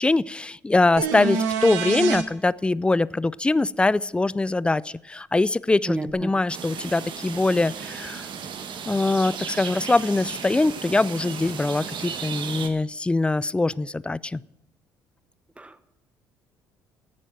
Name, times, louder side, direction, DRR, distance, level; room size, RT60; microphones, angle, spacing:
voice 1, 0.0-8.3 8.9-14.4, left 2 dB, 10° left, 21 dB, 0.4 m, -23 dB
sound 1, 1.0-2.2 6.1-6.2, right 6 dB, 80° right, 1.0 m, -26 dB
voice 2, 5.9-6.3 15.6-15.9, right 2 dB, 10° right, 13 dB, 1.0 m, -31 dB
sound 2, 6.5-12.7, right 7 dB, 55° right, 1.4 m, -35 dB
10.5 x 9.0 x 7.5 m, 0.87 s
hypercardioid pair, 55°, 10 cm